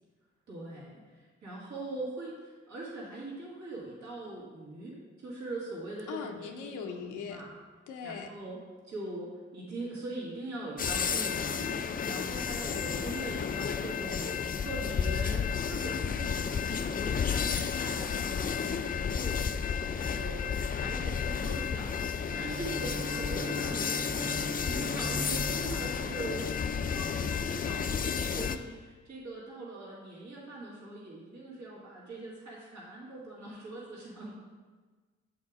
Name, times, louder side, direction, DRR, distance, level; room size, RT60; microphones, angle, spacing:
voice 1, 0.5-7.5 8.0-8.6 8.9-19.5 19.9-34.3, right 2 dB, 70° right, -6 dB, 2.0 m, -42 dB
voice 2, 6.1-7.4 7.9-8.3 23.0-23.2 23.6-23.8, left 6 dB, 85° left, 4 dB, 0.6 m, -41 dB
sound 1, 10.8-28.6, left 6 dB, 30° left, 0.4 m, -32 dB
Bowed string instrument, 22.2-26.9, right 1 dB, 25° right, 0.5 m, -40 dB
7.1 x 3.8 x 4.8 m, 1.4 s
supercardioid pair, 50°, 29 cm